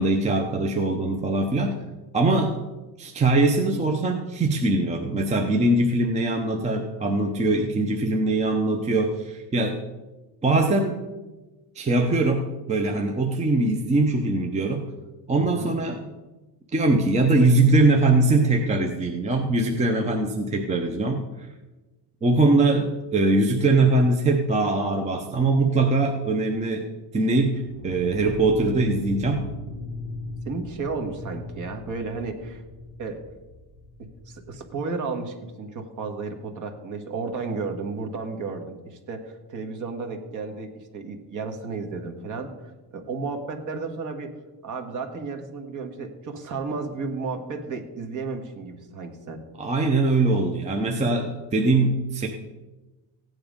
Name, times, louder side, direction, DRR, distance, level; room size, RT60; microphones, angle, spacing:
voice 1, 0.0-1.8 2.1-2.5 3.0-9.8 10.4-11.0 11.7-14.9 15.3-16.1 16.7-21.5 22.2-26.8 27.1-29.5 49.6-52.3, right 2 dB, 15° right, 3 dB, 0.7 m, -22 dB
voice 2, 15.3-15.7 30.5-32.6 33.0-33.2 34.0-42.5 42.9-44.3 44.6-49.4, right 4 dB, 40° right, 4 dB, 1.7 m, -33 dB
sound 1, 27.5-34.6, left 1 dB, 20° left, 5.9 m, -39 dB
15.5 x 9.6 x 5.2 m, 1.1 s
cardioid pair, 180°, 45 cm